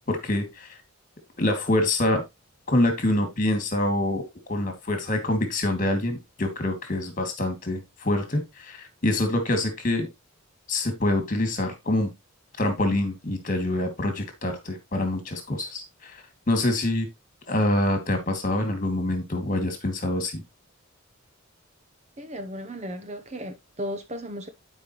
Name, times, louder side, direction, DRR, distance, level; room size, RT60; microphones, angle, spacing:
voice 1, 0.1-0.8 1.4-2.2 2.7-4.2 4.5-10.1 10.7-12.1 12.6-17.1 17.5-20.4, left 1 dB, 40° left, 2.4 m, -26 dB
voice 2, 22.2-24.5, equal, 30° right, 0.9 m, -35 dB
11.5 x 5.2 x 3.1 m
head